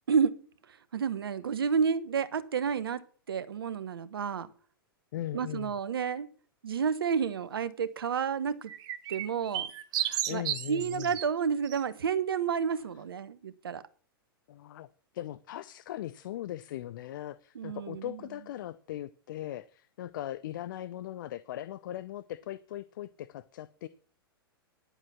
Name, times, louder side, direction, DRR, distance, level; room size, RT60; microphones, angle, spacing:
voice 1, 0.9-3.0 3.3-4.5 5.3-6.3 6.6-8.7 9.1-9.7 10.0-13.8 17.5-18.2, right 6 dB, 75° right, 1.1 m, -30 dB
voice 2, 5.1-5.7 10.3-11.2 12.7-12.8 14.5-14.9 15.1-23.9, left 13 dB, 60° left, 0.6 m, -39 dB
sound 1, 8.7-11.2 11.7-11.8, right 11 dB, 35° right, 1.3 m, -33 dB
11.0 x 8.0 x 5.8 m
figure-of-eight pair, 105°, 12 cm